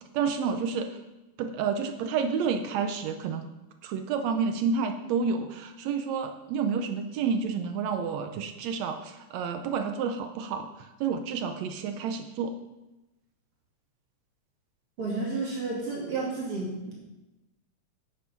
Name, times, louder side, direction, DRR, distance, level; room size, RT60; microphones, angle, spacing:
voice 1, 0.1-1.0 1.4-3.5 3.8-12.5, right 6 dB, 75° right, 7 dB, 1.8 m, -30 dB
voice 2, 15.0-16.9, right 3 dB, 50° right, -4 dB, 3.2 m, -31 dB
9.0 x 8.6 x 5.3 m, 1.0 s
omnidirectional pair, 3.3 m